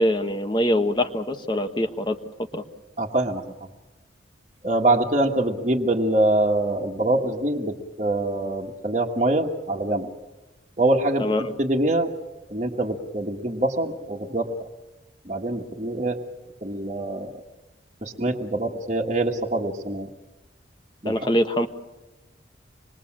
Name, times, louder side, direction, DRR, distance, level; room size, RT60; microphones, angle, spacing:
voice 1, 0.0-2.2 2.5-2.6 11.2-11.4 21.1-21.7, left 1 dB, 25° left, 7 dB, 1.2 m, -23 dB
voice 2, 3.0-3.7 4.6-10.1 10.8-11.3 11.6-12.1 12.5-14.5 15.3-16.2 16.6-17.4 18.0-20.1 21.0-21.3, right 2 dB, 35° right, 0 dB, 1.8 m, -24 dB
26.0 x 21.5 x 7.5 m, 1.1 s
head